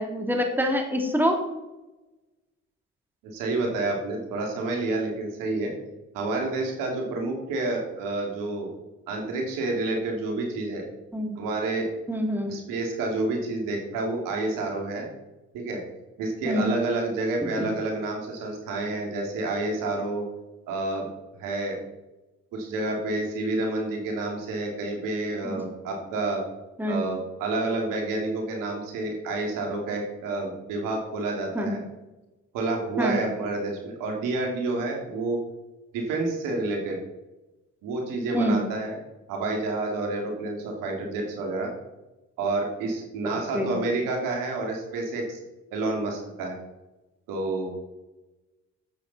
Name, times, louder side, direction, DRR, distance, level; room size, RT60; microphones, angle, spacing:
voice 1, 0.0-1.4 11.1-11.4 12.1-12.5 16.4-16.8 17.4-17.6 25.4-25.6 26.8-27.1 31.5-31.8 33.0-33.2 38.3-38.6 43.2-43.8, equal, 5° right, 2 dB, 2.5 m, -26 dB
voice 2, 3.2-5.7 6.1-8.7 9.1-10.9 11.4-11.9 12.5-15.1 15.5-15.8 16.2-20.3 20.7-21.1 21.4-21.8 22.5-26.4 26.9-31.8 32.5-35.4 35.9-37.0 37.8-39.0 39.3-41.7 42.4-45.4 45.7-46.6 47.3-47.7, right 2 dB, 85° right, 1 dB, 2.3 m, -29 dB
10.5 x 7.9 x 4.0 m, 1.0 s
supercardioid pair, 60°, 32 cm